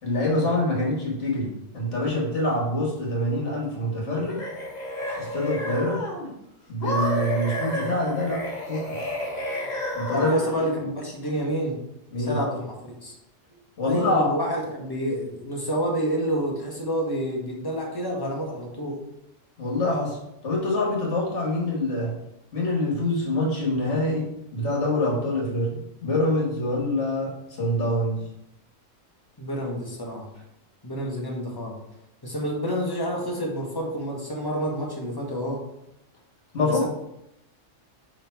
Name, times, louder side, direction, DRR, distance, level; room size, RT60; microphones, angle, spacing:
voice 1, 0.0-4.4 5.2-6.0 6.7-9.0 9.9-10.4 12.1-12.4 13.8-14.3 19.6-20.2 20.4-22.1 22.5-28.3 36.5-36.9, left 1 dB, 65° left, -2 dB, 1.8 m, -25 dB
sound 1, 4.1-6.3 6.8-10.7, left 1 dB, 35° left, 1.5 m, -30 dB
voice 2, 10.1-11.8 12.2-13.1 13.8-19.0 29.4-30.3 30.8-31.8 32.2-35.6 36.6-36.9, equal, 20° left, -2 dB, 1.3 m, -28 dB
5.4 x 3.9 x 4.5 m, 0.83 s
omnidirectional pair, 1.3 m